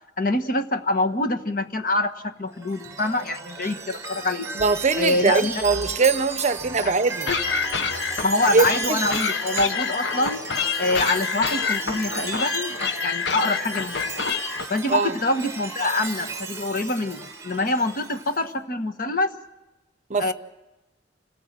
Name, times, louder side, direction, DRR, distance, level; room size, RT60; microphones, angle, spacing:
voice 1, 0.2-4.5 5.0-5.6 6.8-6.9 7.3-7.4 8.2-10.4 10.8-12.8 13.0-14.0 14.7-19.3 20.2-20.3, left 2 dB, 50° left, 8 dB, 1.4 m, -25 dB
Chime, 2.6-18.4, right 4 dB, 15° right, 1.7 m, -34 dB
voice 2, 4.5-7.3 8.5-9.0 14.9-15.2 20.1-20.3, right 4 dB, 40° right, 13 dB, 0.8 m, -22 dB
sound 1, 7.3-14.7, left 5 dB, 75° left, 1.0 m, -28 dB
27.0 x 17.5 x 7.6 m, 1.0 s
head